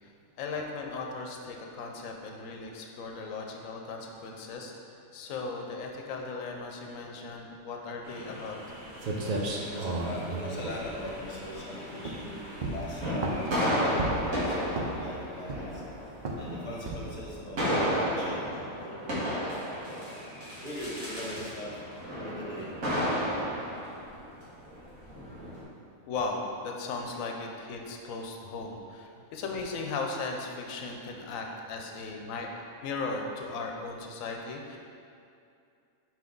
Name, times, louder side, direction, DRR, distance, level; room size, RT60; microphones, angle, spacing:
voice 1, 0.4-4.7 5.1-8.6 26.1-32.5 32.8-34.8, left 3 dB, 75° left, 2 dB, 1.0 m, -37 dB
sound 1, 8.0-25.6, equal, 80° right, 2.0 m, -34 dB
sound 2, 8.7-8.8 9.0-11.6 12.0-12.3 12.6-13.6 14.0-14.4 14.7-15.1 15.5-15.9 16.3-16.5 16.9-17.2, right 2 dB, 50° right, 0.5 m, -33 dB
voice 2, 9.6-15.8 16.4-18.4 18.8-19.6 20.6-21.7 22.1-22.7, left 1 dB, 35° left, -4 dB, 1.1 m, -41 dB
5.8 x 4.7 x 3.8 m, 2.5 s
omnidirectional pair, 1.4 m